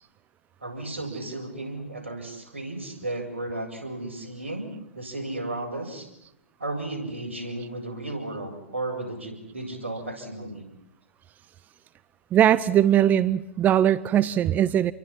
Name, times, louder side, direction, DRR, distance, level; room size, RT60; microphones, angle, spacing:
voice 1, 0.6-6.1 6.6-10.7, right 2 dB, 75° right, 2 dB, 7.8 m, -34 dB
voice 2, 12.3-14.9, right 10 dB, 25° right, 18 dB, 0.8 m, -20 dB
28.5 x 23.5 x 6.0 m, 0.85 s
figure-of-eight pair, 105°, 7 cm